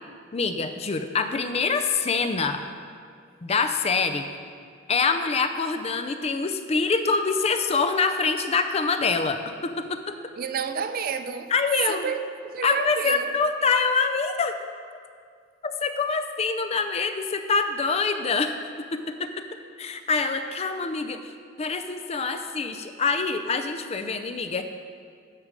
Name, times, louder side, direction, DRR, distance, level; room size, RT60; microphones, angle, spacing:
voice 1, 0.3-2.6 3.4-4.2 4.9-10.1 11.5-12.1 12.6-14.6 15.6-19.3 19.8-21.3 21.6-24.6, left 4 dB, 30° left, 0.4 m, -25 dB
voice 2, 10.4-11.5 11.9-13.3, right 6 dB, 45° right, 0.4 m, -30 dB
9.7 x 6.1 x 5.2 m
head